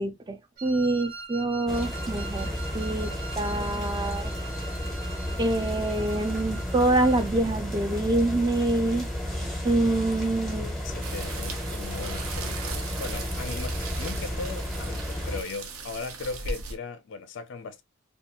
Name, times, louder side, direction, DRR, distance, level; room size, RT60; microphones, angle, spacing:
voice 1, 0.0-4.3 5.4-9.1 9.6-10.8, right 2 dB, 20° right, 0.3 m, -26 dB
Wind instrument woodwind instrument, 0.6-7.3, right 3 dB, 45° right, 0.7 m, -42 dB
sound 1, 1.7-15.4, equal, ahead, 0.7 m, -32 dB
voice 2, 10.6-17.8, left 4 dB, 60° left, 0.3 m, -38 dB
sound 2, 11.0-16.7, right 4 dB, 90° right, 0.6 m, -38 dB
2.5 x 2.3 x 2.7 m
head